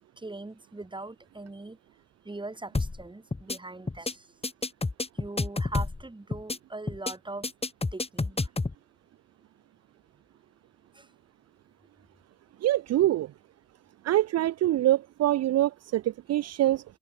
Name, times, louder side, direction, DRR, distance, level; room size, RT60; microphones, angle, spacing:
voice 1, 0.2-1.8 2.2-4.3 5.1-7.5 7.9-8.5 10.9-11.1, right 2 dB, 15° right, 5.0 m, -41 dB
sound 1, 2.7-3.0 3.3-3.6 3.9-4.1 4.4-6.0 6.3-6.6 6.9-7.1 7.4-8.7, left 3 dB, 20° left, 4.4 m, -29 dB
voice 2, 12.6-13.3 14.0-16.8, right 14 dB, 55° right, 0.5 m, -24 dB
open air
cardioid pair, 90°, 30 cm